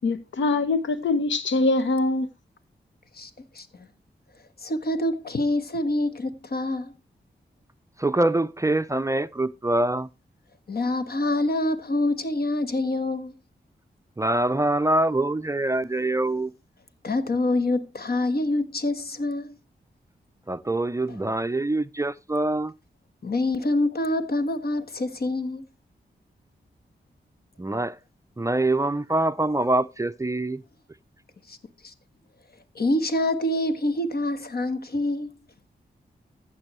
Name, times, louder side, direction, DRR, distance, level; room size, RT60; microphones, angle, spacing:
voice 1, 0.0-2.3, left 3 dB, 80° left, 0.9 m, -23 dB
voice 2, 3.5-3.9 4.6-6.9 10.7-13.3 17.0-19.6 23.2-25.6 31.5-31.6 31.8-31.9 32.7-35.3, left 1 dB, 55° left, 1.3 m, -26 dB
voice 3, 8.0-10.1 14.2-16.5 20.5-22.7 27.6-28.0 28.4-30.6, right 2 dB, 15° right, 0.5 m, -24 dB
15.0 x 6.1 x 3.1 m
cardioid pair, 50°, 19 cm